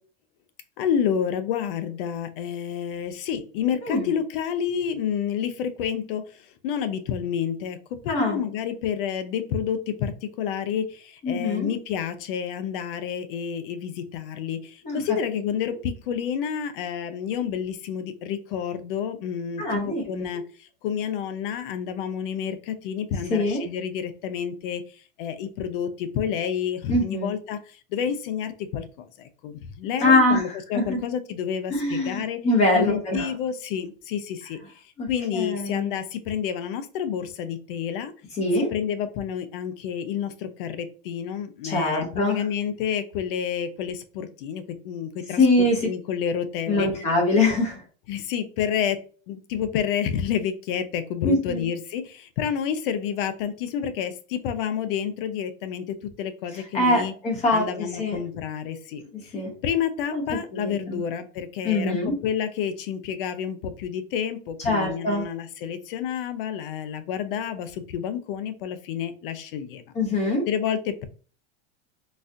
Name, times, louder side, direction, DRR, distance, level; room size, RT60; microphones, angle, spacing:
voice 1, 0.8-32.4 32.7-38.1 38.5-46.9 48.1-49.0 49.3-57.1 57.5-59.3 59.6-69.8 70.5-71.0, left 8 dB, 60° left, 10 dB, 0.6 m, -29 dB
voice 2, 8.1-8.4 11.2-11.7 14.8-15.0 19.6-20.2 23.3-23.6 26.9-27.3 30.0-30.4 30.7-31.0 31.7-33.3 35.0-35.1 35.3-35.9 38.4-38.7 41.6-42.4 45.4-45.9 46.7-47.8 51.2-51.7 56.7-58.2 59.3-59.5 60.1-61.0 61.6-62.1 64.6-65.3 69.9-70.5, left 2 dB, 20° left, 1 dB, 0.8 m, -23 dB
4.0 x 2.4 x 2.6 m, 0.40 s
supercardioid pair, 160°, 30 cm